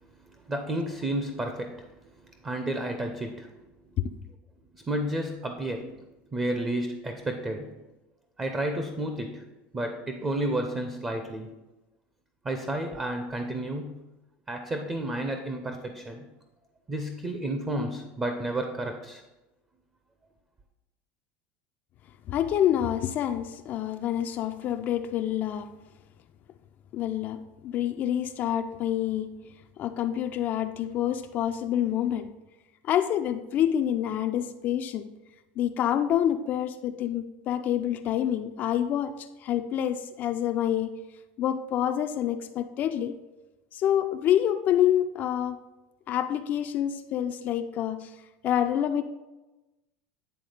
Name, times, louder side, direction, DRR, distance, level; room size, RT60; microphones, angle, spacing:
voice 1, 0.3-3.5 4.7-6.0 6.3-7.7 8.4-9.4 9.7-11.5 12.4-14.0 14.5-16.3 16.9-19.2, right 1 dB, 15° right, 5 dB, 0.6 m, -31 dB
voice 2, 22.3-25.7 26.9-29.4 29.8-32.3 32.8-35.0 35.6-41.0 41.4-43.2 43.7-45.6 46.1-48.1 48.4-49.0, left 10 dB, 40° left, 7 dB, 0.4 m, -27 dB
10.0 x 3.6 x 5.0 m, 1.1 s
supercardioid pair, 145°, 5 cm